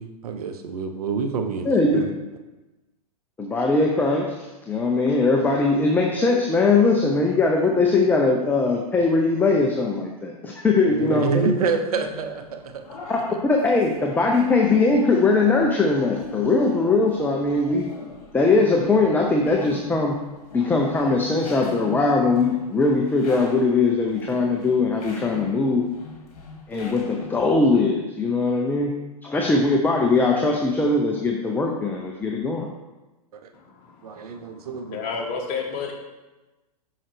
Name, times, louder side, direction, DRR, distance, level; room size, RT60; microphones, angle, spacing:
voice 1, 0.0-2.1 10.8-12.9 33.3-33.5 34.0-35.0, right 6 dB, 70° right, 6 dB, 0.7 m, -27 dB
voice 2, 1.7-2.0 3.4-4.4 4.7-11.5 13.1-13.2 13.5-17.8 18.3-20.2 20.5-25.8 26.7-29.0 29.2-32.7, left 3 dB, 10° left, 0 dB, 0.5 m, -20 dB
voice 3, 11.0-11.3 33.5-35.9, left 5 dB, 40° left, 1 dB, 1.3 m, -33 dB
sound 1, 11.9-27.6, left 4 dB, 65° left, 1.5 m, -40 dB
5.6 x 5.6 x 3.3 m, 1.1 s
hypercardioid pair, 105°, 20 cm